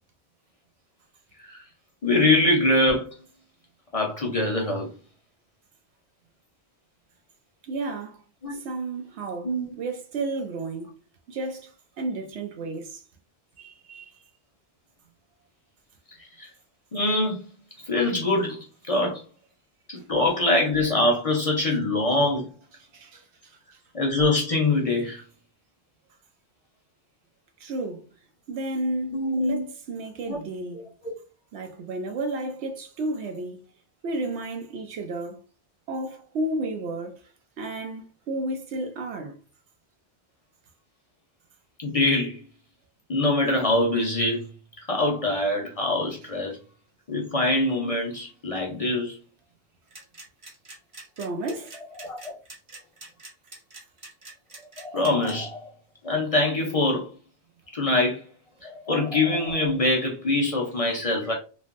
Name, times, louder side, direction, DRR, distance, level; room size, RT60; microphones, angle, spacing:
voice 1, 2.0-3.2 3.9-4.9 8.4-8.6 9.4-9.6 16.4-16.5 16.9-17.5 17.9-18.6 18.9-19.2 19.9-22.5 23.9-25.2 29.1-29.7 30.3-30.4 30.7-30.8 41.8-42.4 43.1-44.4 44.9-46.6 47.1-49.2 52.0-52.3 54.8-55.6 56.0-57.1 57.7-58.2 58.6-61.3, left 2 dB, 45° left, 0.5 m, -24 dB
voice 2, 7.6-8.2 8.6-10.9 11.3-13.0 13.6-14.1 22.9-23.5 27.6-28.0 28.5-30.8 31.5-33.6 34.0-35.4 35.9-37.2 37.6-39.4 51.2-51.8, right 2 dB, 85° right, 0.9 m, -32 dB
sound 1, 49.9-55.3, right 2 dB, 35° right, 0.7 m, -44 dB
3.2 x 2.1 x 2.4 m
omnidirectional pair, 1.1 m